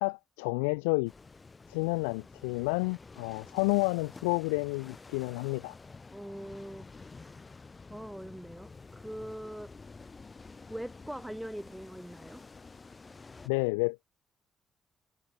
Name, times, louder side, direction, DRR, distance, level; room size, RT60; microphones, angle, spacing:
voice 1, 0.0-1.1 1.7-5.7 13.5-14.0, left 32 dB, 90° left, 0.3 m, -30 dB
sound 1, 1.1-13.5, left 4 dB, 35° left, 3.6 m, -50 dB
voice 2, 6.1-7.5 7.9-9.7 10.7-12.4, equal, 5° right, 1.6 m, -42 dB
hypercardioid pair, 45°, 0 cm